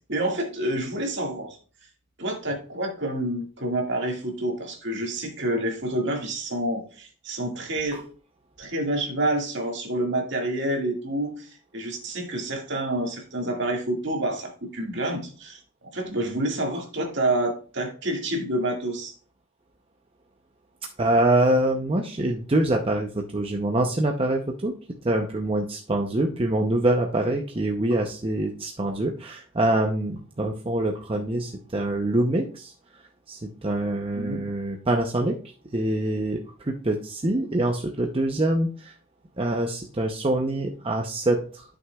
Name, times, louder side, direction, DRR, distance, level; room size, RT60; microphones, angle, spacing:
voice 1, 0.0-1.6 2.2-8.0 8.6-15.6 15.9-19.1 34.1-34.4, right 1 dB, 50° right, 2 dB, 1.9 m, -28 dB
voice 2, 21.0-24.8 25.0-32.7 33.3-35.4 35.7-38.9 39.4-41.6, right 1 dB, 25° right, 2 dB, 0.6 m, -25 dB
11.0 x 6.2 x 2.3 m, 0.39 s
head